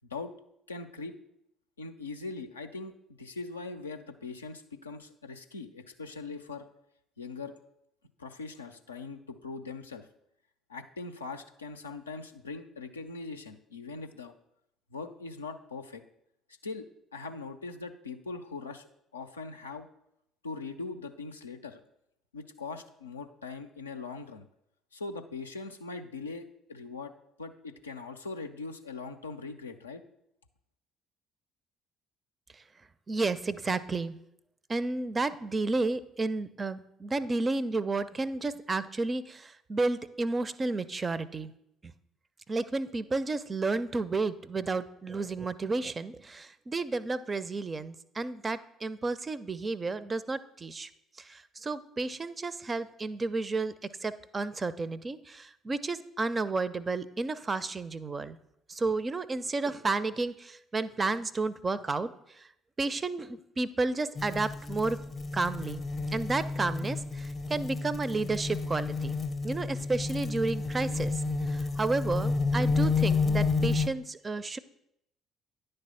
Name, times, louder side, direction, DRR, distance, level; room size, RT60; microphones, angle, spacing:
voice 1, 0.7-1.1 1.8-6.7 7.2-7.5 8.2-10.1 10.7-14.3 14.9-16.0 16.6-16.9 17.1-18.9 19.1-19.9 20.4-21.8 22.3-24.5 24.9-27.1 27.4-30.0, left 4 dB, 85° left, 6 dB, 0.4 m, -41 dB
voice 2, 33.1-34.2 34.7-41.5 42.5-50.9 51.2-53.7 54.0-58.4 58.7-62.5 62.8-65.0 65.3-65.8 66.1-74.6, right 3 dB, 30° right, 15 dB, 0.4 m, -32 dB
sound 1, 64.2-73.9, left 4 dB, 30° left, 0.6 m, -30 dB
10.0 x 3.3 x 5.5 m, 0.77 s
figure-of-eight pair, 50°, 0 cm